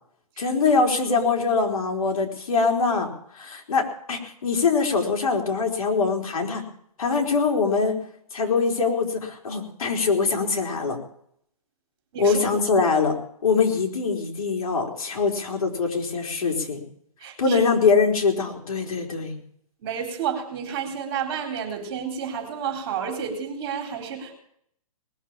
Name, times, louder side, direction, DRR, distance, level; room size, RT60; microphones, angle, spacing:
voice 1, 0.4-6.7 7.0-8.0 8.3-11.0 12.2-13.2 13.4-16.8 17.4-19.4, left 4 dB, 65° left, 2 dB, 3.8 m, -23 dB
voice 2, 17.2-17.6 19.8-24.3, right 7 dB, 40° right, 5 dB, 3.8 m, -30 dB
19.5 x 7.3 x 8.7 m, 0.68 s
hypercardioid pair, 160°, 19 cm